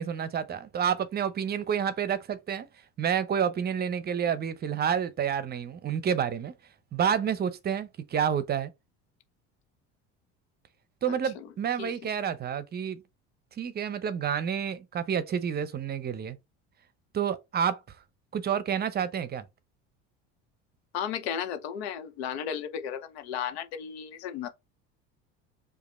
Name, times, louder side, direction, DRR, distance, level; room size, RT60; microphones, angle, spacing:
voice 1, 0.0-2.7 3.0-6.5 6.9-8.7 11.0-13.0 13.6-16.4 17.1-17.8 18.3-19.5, right 8 dB, 30° right, 0.6 m, -29 dB
voice 2, 11.1-11.5 11.8-11.9 20.9-24.5, left 8 dB, 90° left, 0.8 m, -34 dB
5.0 x 2.5 x 3.1 m
supercardioid pair, 100°, 31 cm